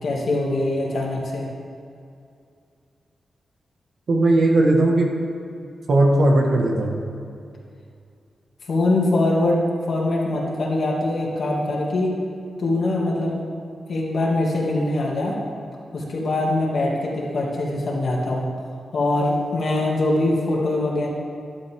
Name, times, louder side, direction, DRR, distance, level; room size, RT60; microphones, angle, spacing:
voice 1, 0.0-1.5 8.7-12.1 12.6-13.4 13.9-15.4 15.9-18.5 18.9-21.1, left 2 dB, 55° left, -3 dB, 2.5 m, -23 dB
voice 2, 4.1-5.1 5.9-7.0, right 2 dB, 55° right, 0 dB, 1.7 m, -17 dB
12.5 x 12.0 x 3.8 m, 2.4 s
wide cardioid pair, 145°, 0 cm